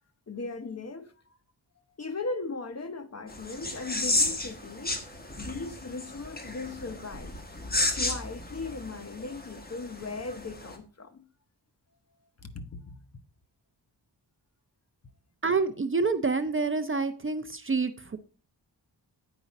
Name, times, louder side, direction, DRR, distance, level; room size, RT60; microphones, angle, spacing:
voice 1, 0.3-1.1 2.0-5.0 5.4-7.4 7.9-11.3 12.4-13.0, left 3 dB, 40° left, 0.9 m, -38 dB
sound 1, 3.3-10.8, left 2 dB, 20° left, 1.2 m, -33 dB
voice 2, 15.4-18.2, right 4 dB, 30° right, 0.5 m, -27 dB
9.0 x 4.9 x 4.1 m
wide cardioid pair, 95°, 41 cm